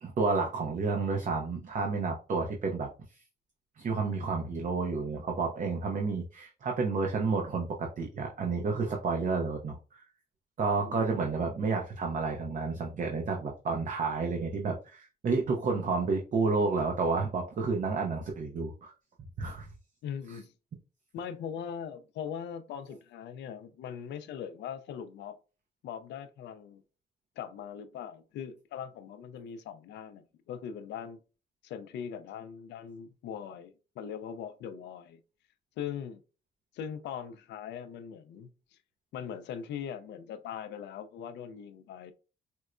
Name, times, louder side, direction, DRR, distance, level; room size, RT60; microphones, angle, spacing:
voice 1, 0.0-2.9 3.8-10.0 10.6-18.9 19.4-19.7, right 4 dB, 45° right, 0.6 m, -30 dB
voice 2, 20.0-20.5 21.1-25.4 25.8-26.8 27.4-31.2 31.6-35.2 35.8-36.2 36.7-38.8 39.1-42.1, left 8 dB, 80° left, 0.4 m, -41 dB
4.4 x 2.1 x 2.4 m
cardioid pair, 100°, 18 cm